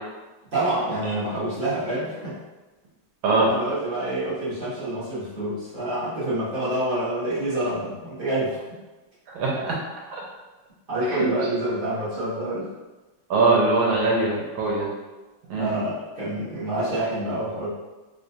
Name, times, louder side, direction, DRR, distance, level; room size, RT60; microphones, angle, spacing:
voice 1, 0.5-2.4 3.5-8.6 9.5-9.6 10.9-12.7 15.6-17.7, right 1 dB, 50° right, -11 dB, 0.6 m, -27 dB
voice 2, 9.3-9.8 10.1-10.2 11.1-11.3 13.3-14.9 15.5-15.7, right 3 dB, 75° right, -3 dB, 1.4 m, -22 dB
4.3 x 2.2 x 2.6 m, 1.1 s
omnidirectional pair, 2.4 m